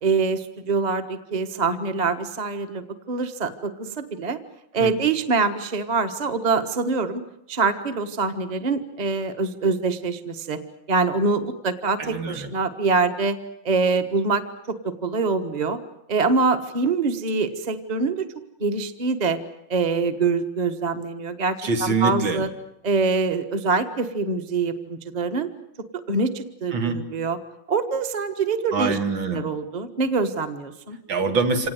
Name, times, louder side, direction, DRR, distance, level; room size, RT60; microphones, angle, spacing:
voice 1, 0.0-4.4 4.7-7.2 7.5-10.6 10.9-13.4 13.6-15.8 16.1-18.3 18.6-19.4 19.7-22.5 22.8-25.5 26.1-27.4 27.7-29.0 29.3-31.0, right 4 dB, 25° right, 8 dB, 1.4 m, -24 dB
voice 2, 12.0-12.5 21.6-22.4 26.7-27.0 28.7-29.4 31.1-31.7, right 4 dB, 75° right, 5 dB, 3.1 m, -24 dB
26.5 x 18.5 x 9.4 m, 0.81 s
omnidirectional pair, 2.2 m